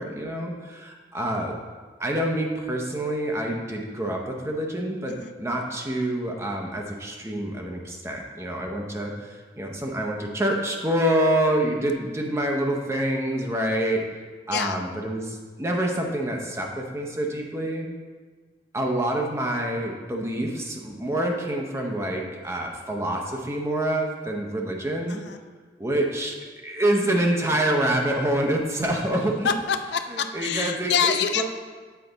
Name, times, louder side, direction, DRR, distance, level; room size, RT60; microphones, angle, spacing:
voice 1, 0.0-1.5 2.0-14.0 14.5-17.9 18.7-25.2 25.8-26.3 26.6-29.5 30.1-31.4, right 1 dB, 15° right, 1 dB, 0.7 m, -27 dB
voice 2, 29.4-31.4, left 7 dB, 65° left, 7 dB, 0.4 m, -26 dB
8.0 x 4.1 x 3.9 m, 1.4 s
head